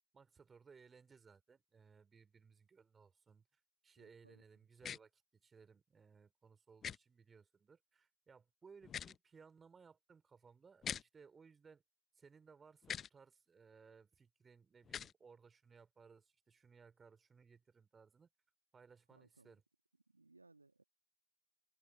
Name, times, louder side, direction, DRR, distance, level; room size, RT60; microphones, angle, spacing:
voice 1, 0.1-11.8 12.2-18.3 18.7-19.6, right 5 dB, 20° right, 3.6 m, -63 dB
voice 2, 4.0-4.4 19.1-19.6 20.1-20.8, right 3 dB, 90° right, 2.1 m, -66 dB
sound 1, 4.8-5.0 6.8-7.0 8.8-9.2 10.8-11.0 12.8-13.1 14.8-15.1, left 8 dB, 30° left, 0.7 m, -43 dB
figure-of-eight pair, 85°, 0 cm